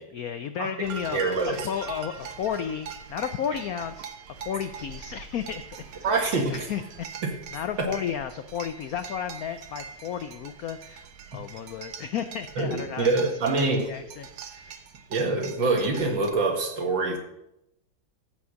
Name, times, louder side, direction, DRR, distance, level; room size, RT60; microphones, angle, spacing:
voice 1, 0.1-5.6 6.0-6.2 6.5-14.8, left 8 dB, 85° left, 10 dB, 0.7 m, -33 dB
sound 1, 0.8-16.3, right 6 dB, 90° right, 1.9 m, -42 dB
voice 2, 1.1-1.6 6.0-6.7 7.8-7.9 12.6-13.9 15.1-17.2, right 3 dB, 65° right, 2 dB, 2.5 m, -25 dB
14.5 x 5.4 x 6.3 m, 0.84 s
omnidirectional pair, 2.2 m